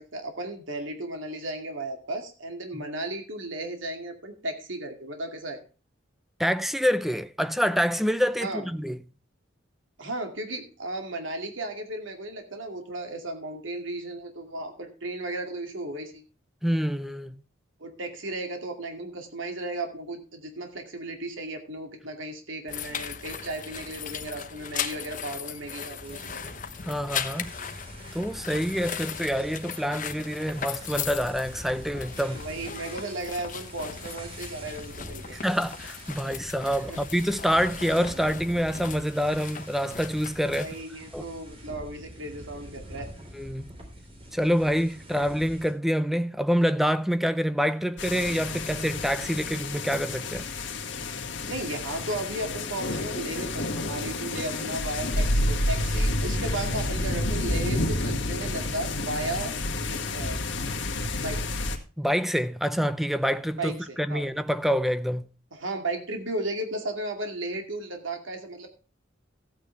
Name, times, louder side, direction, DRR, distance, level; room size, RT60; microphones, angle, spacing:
voice 1, 0.0-5.6 8.4-8.6 10.0-16.2 17.8-26.5 32.3-35.4 36.9-37.0 40.6-43.1 51.4-59.5 59.9-60.4 61.2-61.4 63.6-64.2 65.5-68.7, right 2 dB, 85° right, 2.4 m, -35 dB
voice 2, 6.4-9.0 16.6-17.4 26.9-27.5 28.1-32.4 35.3-40.7 41.1-41.3 43.3-43.7 44.3-50.5 62.0-65.3, equal, ahead, 0.5 m, -26 dB
sound 1, 22.7-40.8, left 7 dB, 45° left, 1.0 m, -38 dB
sound 2, 26.0-45.7, equal, 30° right, 3.8 m, -45 dB
sound 3, 48.0-61.8, left 2 dB, 70° left, 2.0 m, -29 dB
15.0 x 9.3 x 3.4 m
head